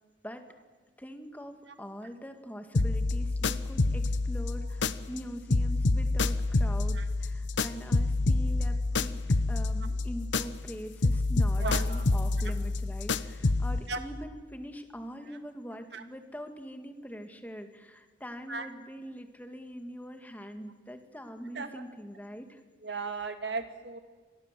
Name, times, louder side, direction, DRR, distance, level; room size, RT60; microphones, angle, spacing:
voice 1, 1.0-9.2 9.5-22.6, equal, 10° left, 6 dB, 2.1 m, -43 dB
sound 1, 2.7-5.2 5.5-10.7 11.0-13.8, left 2 dB, 75° left, 1.0 m, -28 dB
voice 2, 11.6-12.0 13.9-14.0 15.9-16.0 18.5-18.7 21.6-21.8 22.8-24.0, right 4 dB, 65° right, 7 dB, 2.2 m, -35 dB
29.0 x 23.0 x 7.7 m, 1.4 s
head